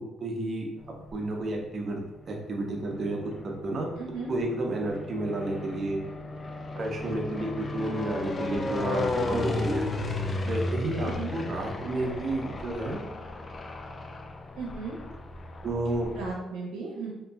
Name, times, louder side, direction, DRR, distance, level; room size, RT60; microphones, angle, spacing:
voice 1, 0.2-0.7 1.1-2.0 2.3-3.2 3.4-3.9 4.3-6.0 6.8-9.9 10.4-13.0 15.6-16.1, right 2 dB, 50° right, 1 dB, 0.6 m, -31 dB
sound 1, 0.8-1.5 2.3-16.3, left 2 dB, 35° left, 0.3 m, -35 dB
voice 2, 4.0-4.3 9.1-9.4 11.0-11.3 14.6-15.0 16.2-17.1, right 4 dB, 85° right, -2 dB, 0.7 m, -36 dB
2.8 x 2.6 x 2.4 m, 0.94 s
cardioid pair, 90°, 0 cm